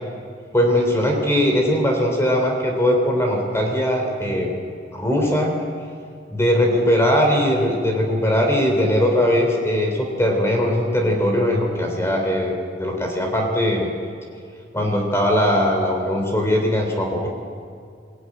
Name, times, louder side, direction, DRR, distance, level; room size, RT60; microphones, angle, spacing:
voice 1, 0.5-4.5 4.9-5.5 6.3-13.9 14.7-17.3, equal, 15° left, 2 dB, 3.0 m, -20 dB
23.0 x 17.0 x 9.3 m, 2.3 s
head